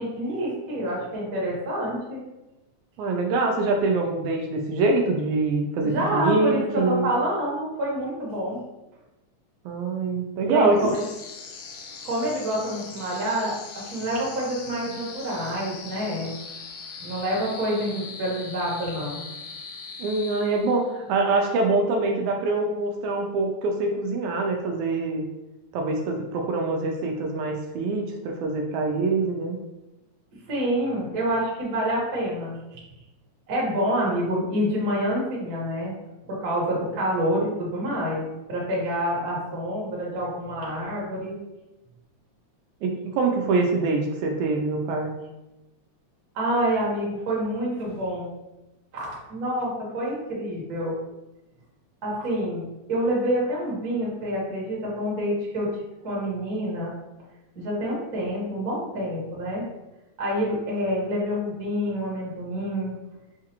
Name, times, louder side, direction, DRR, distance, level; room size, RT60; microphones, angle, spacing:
voice 1, 0.0-2.2 5.8-8.6 10.5-11.0 12.0-16.3 17.0-19.2 30.5-32.8 33.5-36.0 36.3-41.4 46.3-48.3 48.9-51.0 52.0-55.7 56.0-56.9 57.5-59.7 60.2-62.9, equal, 45° right, -5 dB, 1.2 m, -27 dB
voice 2, 3.0-7.1 9.7-10.9 20.0-25.2 25.7-29.6 42.8-45.1, right 3 dB, 80° right, 2 dB, 1.9 m, -24 dB
sound 1, 10.7-21.0, left 5 dB, 80° left, 1.4 m, -40 dB
6.4 x 2.4 x 2.9 m, 0.99 s
omnidirectional pair, 3.4 m